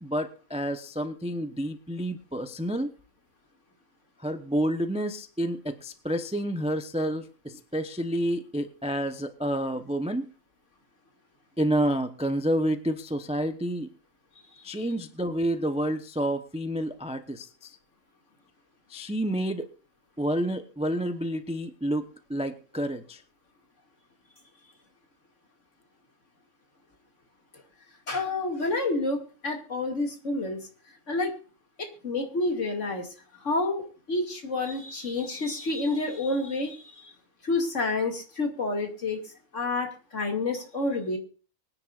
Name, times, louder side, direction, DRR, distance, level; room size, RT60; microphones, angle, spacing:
voice 1, 0.0-2.9 4.2-10.3 11.6-13.9 14.6-17.8 18.9-19.7 20.2-23.2, right 1 dB, 5° right, 8 dB, 0.6 m, -29 dB
voice 2, 28.1-30.7 31.1-31.3 31.8-33.1 33.4-37.1 37.4-41.2, left 2 dB, 55° left, 2 dB, 2.6 m, -29 dB
24.0 x 10.0 x 2.5 m, 0.37 s
omnidirectional pair, 1.6 m